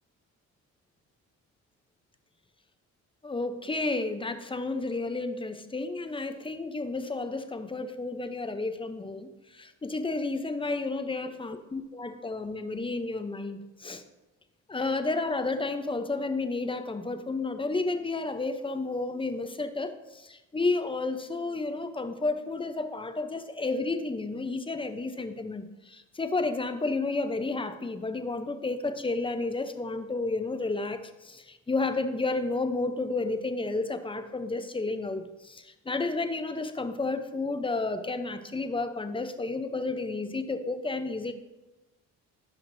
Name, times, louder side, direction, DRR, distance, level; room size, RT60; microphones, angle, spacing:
voice 1, 3.2-14.0 14.7-41.3, left 3 dB, 15° left, 9 dB, 0.7 m, -31 dB
15.0 x 5.8 x 2.7 m, 1.0 s
cardioid pair, 90°, 30 cm